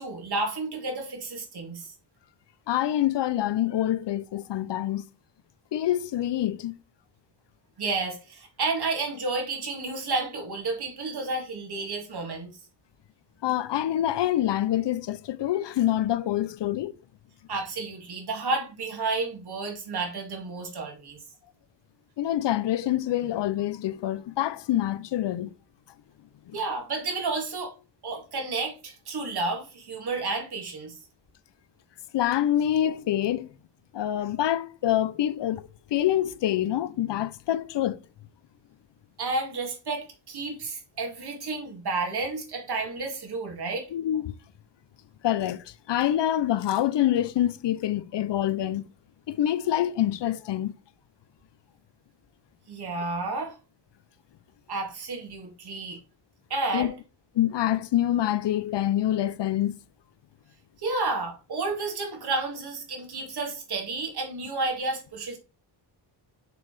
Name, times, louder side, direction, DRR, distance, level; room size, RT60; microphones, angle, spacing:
voice 1, 0.0-1.9 7.8-12.5 17.5-21.2 26.5-27.7 28.0-31.0 39.2-43.9 52.7-53.6 54.7-56.0 56.5-56.9 60.8-65.4, right 3 dB, 60° right, 2.5 m, -31 dB
voice 2, 2.7-5.1 5.7-6.8 13.4-16.9 22.2-25.5 26.5-26.6 32.1-33.5 33.9-38.0 43.9-44.3 45.2-48.8 49.3-50.7 56.7-56.9 57.3-59.8, left 12 dB, 75° left, 0.7 m, -26 dB
6.5 x 4.7 x 4.8 m
wide cardioid pair, 125°, 43 cm